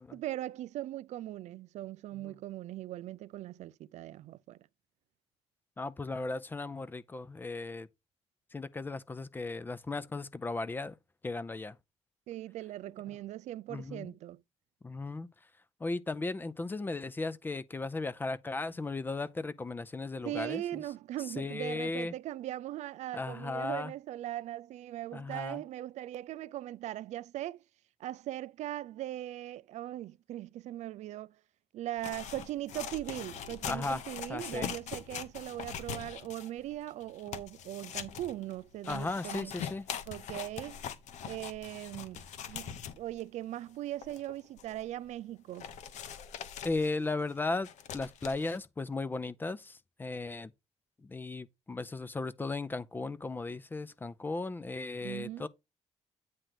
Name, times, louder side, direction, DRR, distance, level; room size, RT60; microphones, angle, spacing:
voice 1, 0.0-4.6 12.3-14.4 20.2-27.6 28.0-31.4 31.7-39.5 40.1-40.9 41.2-45.7 55.0-55.5, right 14 dB, 80° right, 0.4 m, -40 dB
voice 2, 5.8-7.9 8.5-11.0 11.2-11.8 13.7-14.1 14.8-15.3 15.8-20.8 21.4-22.1 23.1-23.9 25.1-25.6 33.6-34.0 34.3-34.7 38.9-39.9 46.6-47.7 47.9-50.5 51.0-55.5, left 3 dB, 15° left, 0.5 m, -36 dB
sound 1, 32.0-43.2 43.7-43.8 44.0-44.8 45.1-45.2 45.6-48.6, left 8 dB, 90° left, 0.9 m, -42 dB
9.1 x 3.2 x 5.7 m
cardioid pair, 170°, 12 cm